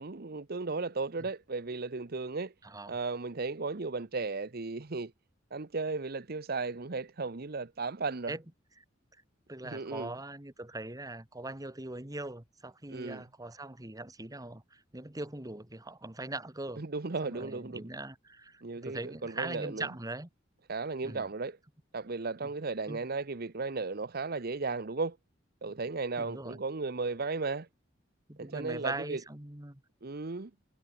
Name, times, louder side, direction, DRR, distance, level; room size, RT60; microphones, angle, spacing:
voice 1, 0.0-2.5 2.9-5.1 5.5-8.4 9.6-10.1 12.9-13.2 16.8-17.8 18.6-19.9 20.7-21.6 21.9-25.2 25.6-27.7 28.4-29.2 30.0-30.5, right 3 dB, 55° right, 0.9 m, -35 dB
voice 2, 2.6-3.0 8.3-8.4 9.5-16.8 17.2-20.3 21.0-21.3 22.9-23.0 26.2-26.6 28.3-29.8, right 2 dB, 20° right, 1.8 m, -41 dB
head